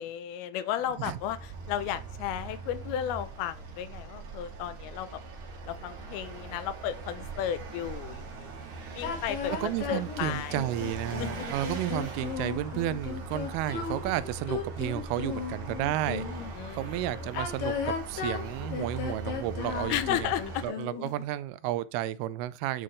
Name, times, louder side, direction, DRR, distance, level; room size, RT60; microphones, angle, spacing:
voice 1, 0.0-1.4 1.7-5.1 5.7-8.5 9.0-10.6 11.2-11.3 16.6-17.3 19.9-20.6, left 10 dB, 85° left, 2.6 m, -34 dB
Vehicle, 0.9-20.7, right 3 dB, 55° right, 2.9 m, -41 dB
sound 1, 9.0-16.5 17.2-21.2, left 6 dB, 70° left, 2.9 m, -36 dB
voice 2, 9.5-16.3 16.7-20.3 20.6-22.8, right 13 dB, 85° right, 2.5 m, -32 dB
11.0 x 3.7 x 3.1 m
omnidirectional pair, 4.4 m